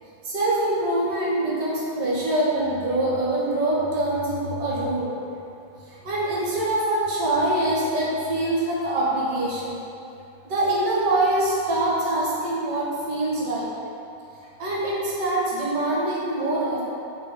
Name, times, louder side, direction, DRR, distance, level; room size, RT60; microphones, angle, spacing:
voice 1, 0.2-5.1 5.9-9.8 10.4-13.7 14.6-16.8, right 1 dB, 70° right, -5 dB, 1.3 m, -24 dB
4.8 x 2.1 x 3.9 m, 2.7 s
omnidirectional pair, 2.0 m